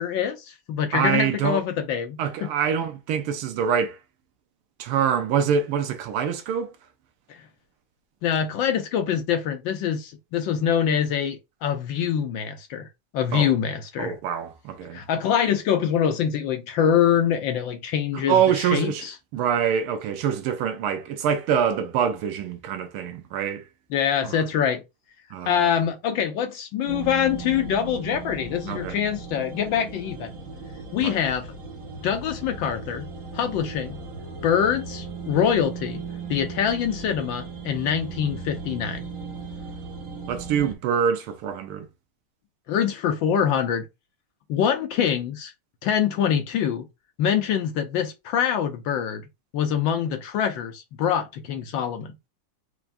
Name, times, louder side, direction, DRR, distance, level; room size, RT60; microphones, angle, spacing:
voice 1, 0.0-2.5 7.3-7.4 8.2-12.9 13.1-14.1 14.9-19.1 23.9-24.8 25.4-30.3 30.9-31.5 32.0-33.1 33.3-34.0 34.4-36.0 36.3-39.0 42.7-43.9 44.5-45.5 45.8-46.8 47.2-49.2 49.5-52.1, left 8 dB, 70° left, 1.2 m, -24 dB
voice 2, 0.9-1.6 2.2-4.0 4.8-6.7 13.3-13.5 14.0-15.0 18.1-19.1 19.3-23.6 24.2-24.4 25.3-25.7 28.7-29.0 31.0-31.2 40.3-41.9, right 8 dB, 80° right, 1.6 m, -25 dB
sound 1, 26.9-40.7, right 4 dB, 50° right, 1.1 m, -37 dB
4.6 x 3.0 x 2.5 m
omnidirectional pair, 2.4 m